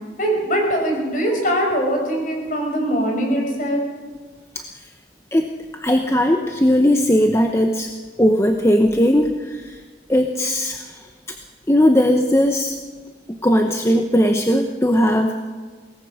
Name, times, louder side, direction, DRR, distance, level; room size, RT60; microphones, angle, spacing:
voice 1, 0.2-3.8, equal, 45° left, 2 dB, 5.4 m, -21 dB
voice 2, 5.8-7.9 8.2-9.8 10.1-10.8 11.7-12.7 13.4-15.4, equal, 15° left, 4 dB, 0.9 m, -18 dB
22.5 x 18.5 x 6.5 m, 1.5 s
head